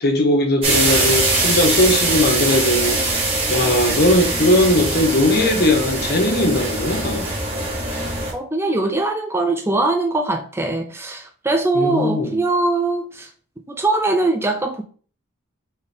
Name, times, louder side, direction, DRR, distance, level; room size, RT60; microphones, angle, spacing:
voice 1, 0.0-7.3 11.7-12.4, left 1 dB, 45° left, 0.9 m, -19 dB
sound 1, 0.6-8.3, right 2 dB, 25° right, 1.4 m, -22 dB
voice 2, 8.3-13.3 13.7-14.8, right 2 dB, 10° right, 0.3 m, -21 dB
4.2 x 3.6 x 3.4 m
head